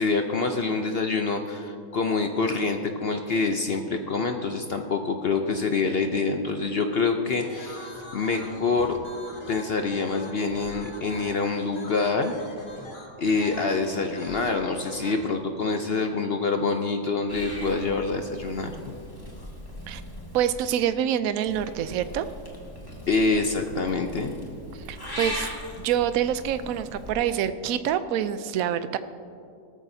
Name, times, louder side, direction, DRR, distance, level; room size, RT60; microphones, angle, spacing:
voice 1, 0.0-9.0 9.5-12.3 13.2-19.0 19.4-19.5 23.1-24.3, left 4 dB, 65° left, 5 dB, 0.6 m, -26 dB
sound 1, 7.4-15.3, left 1 dB, 30° left, 1.6 m, -42 dB
Purr / Meow, 17.3-20.5 21.5-27.1, left 1 dB, 15° left, 1.6 m, -39 dB
voice 2, 20.3-22.3 24.7-25.5 25.8-29.0, right 10 dB, 70° right, 12 dB, 0.9 m, -26 dB
18.0 x 13.5 x 2.7 m, 2.4 s
omnidirectional pair, 1.8 m